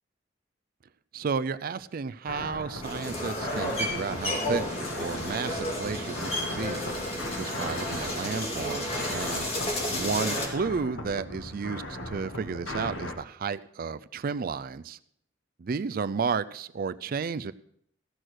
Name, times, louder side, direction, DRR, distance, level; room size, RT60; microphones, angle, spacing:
voice 1, 1.1-4.6 4.9-6.8 7.3-9.5 9.9-15.0 15.6-17.5, right 5 dB, 50° right, 14 dB, 0.4 m, -32 dB
sound 1, 2.3-13.1, left 1 dB, 80° left, 1.6 m, -38 dB
sound 2, 2.8-10.5, left 1 dB, 35° left, 2.3 m, -32 dB
15.5 x 6.3 x 6.2 m, 0.69 s
head